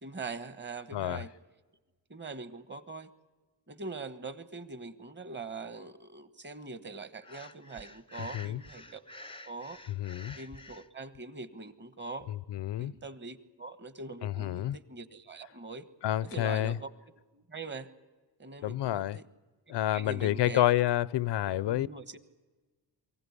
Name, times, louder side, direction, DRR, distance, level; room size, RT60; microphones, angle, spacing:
voice 1, 0.0-1.3 2.1-3.1 3.7-9.0 9.4-9.8 10.4-12.3 12.8-15.8 16.2-16.9 17.2-17.9 18.4-19.2 19.7-20.6 21.5-22.2, right 3 dB, 25° right, 1.3 m, -43 dB
voice 2, 0.9-1.2 8.3-8.6 10.0-10.4 12.5-12.9 14.2-14.8 16.0-16.7 18.6-19.2 19.7-21.9, left 13 dB, 80° left, 0.6 m, -29 dB
Breathing, 7.2-10.9, left 1 dB, 15° left, 0.6 m, -49 dB
23.5 x 16.0 x 9.7 m
cardioid pair, 105°, 41 cm